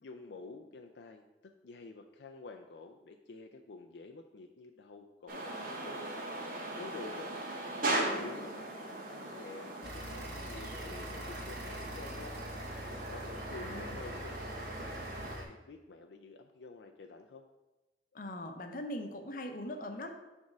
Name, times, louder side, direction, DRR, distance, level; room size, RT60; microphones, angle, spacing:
voice 1, 0.0-1.2 1.6-6.0 6.8-7.3 7.7-12.4 13.1-15.0 15.3-17.4, left 3 dB, 80° left, 4 dB, 0.4 m, -49 dB
sound 1, 5.3-15.4, right 2 dB, 50° right, 1.2 m, -39 dB
sound 2, 9.8-15.4, equal, 70° right, 2.4 m, -44 dB
voice 2, 13.6-14.1 18.1-20.2, left 1 dB, 50° left, 6 dB, 0.7 m, -41 dB
6.4 x 3.6 x 6.1 m, 1.1 s
head